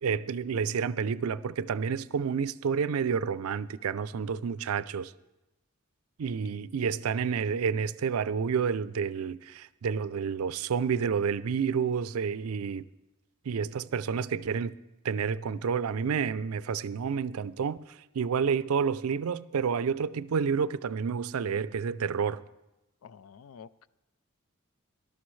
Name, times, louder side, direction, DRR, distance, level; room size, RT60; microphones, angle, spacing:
voice 1, 0.0-5.1 6.2-12.9 13.5-14.7 15.0-17.8 18.1-22.4, right 6 dB, 90° right, 0.4 m, -29 dB
voice 2, 23.0-23.9, left 6 dB, 80° left, 0.4 m, -49 dB
19.0 x 12.0 x 3.2 m
head